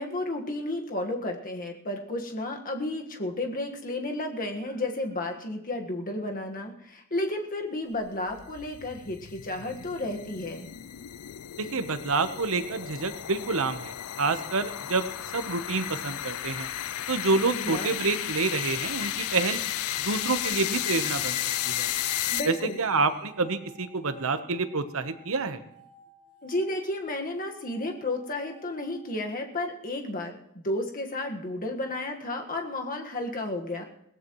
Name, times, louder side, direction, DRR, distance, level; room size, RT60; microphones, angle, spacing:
voice 1, 0.0-10.7 17.5-17.9 22.3-22.8 26.4-33.8, left 2 dB, 40° left, 3 dB, 1.6 m, -32 dB
sound 1, 8.1-22.9, left 12 dB, 80° left, 0.5 m, -34 dB
voice 2, 11.6-16.7 17.1-19.6 20.0-21.4 21.6-21.9 22.5-25.6, right 3 dB, 65° right, 10 dB, 1.1 m, -28 dB
sound 2, 19.7-29.8, right 1 dB, 50° right, 4.4 m, -55 dB
21.5 x 17.5 x 3.1 m, 0.75 s
head